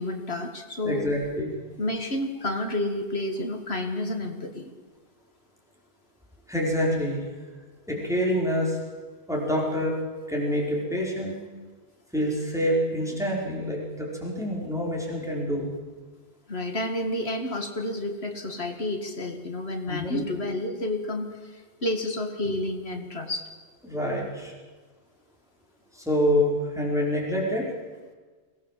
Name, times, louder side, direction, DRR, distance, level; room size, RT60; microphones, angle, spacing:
voice 1, 0.0-1.1 1.8-4.7 16.5-23.5, left 1 dB, 70° left, 5 dB, 2.3 m, -30 dB
voice 2, 0.8-1.5 6.5-7.2 7.9-8.8 9.3-10.0 10.3-11.4 12.1-15.7 19.9-20.2 23.8-24.5 25.9-27.7, equal, 5° right, -3 dB, 4.9 m, -26 dB
23.0 x 18.5 x 7.6 m, 1.4 s
omnidirectional pair, 1.1 m